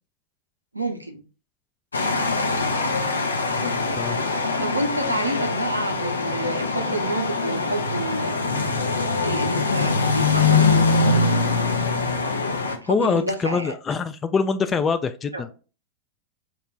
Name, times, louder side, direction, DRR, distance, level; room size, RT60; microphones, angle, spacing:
voice 1, 0.7-1.2 4.6-11.1 12.8-13.7 15.3-15.4, right 1 dB, 85° right, 0.6 m, -29 dB
sound 1, 1.9-12.8, left 3 dB, 75° left, 0.5 m, -23 dB
voice 2, 3.5-4.2 12.9-15.5, left 5 dB, 20° left, 0.3 m, -25 dB
3.1 x 2.5 x 3.6 m
figure-of-eight pair, 90°, 0 cm